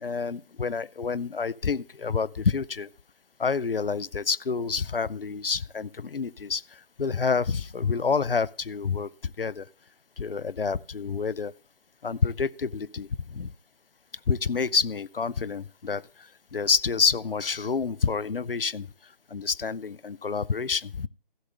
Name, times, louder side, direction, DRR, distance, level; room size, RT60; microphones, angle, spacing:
voice 1, 0.0-2.9 3.4-9.7 10.2-11.5 12.0-13.5 14.3-18.9 19.3-21.1, left 5 dB, 75° left, 0.6 m, -28 dB
15.5 x 6.5 x 3.3 m
figure-of-eight pair, 160°, 29 cm